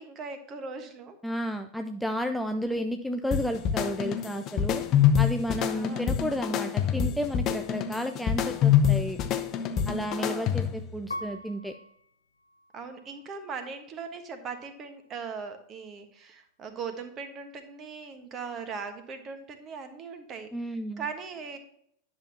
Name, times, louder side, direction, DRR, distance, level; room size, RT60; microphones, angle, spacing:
voice 1, 0.0-1.2 5.7-6.0 10.2-10.5 12.7-20.5 21.0-21.6, right 5 dB, 30° right, 8 dB, 1.2 m, -39 dB
voice 2, 1.2-4.8 5.2-9.2 9.9-11.7 20.5-21.1, equal, ahead, 5 dB, 0.5 m, -32 dB
sound 1, 3.3-10.9, left 9 dB, 35° left, 0.7 m, -26 dB
Piano, 11.1-13.9 14.5-15.2, left 1 dB, 75° left, 0.4 m, -44 dB
10.5 x 6.1 x 2.8 m, 0.69 s
figure-of-eight pair, 90°, 0 cm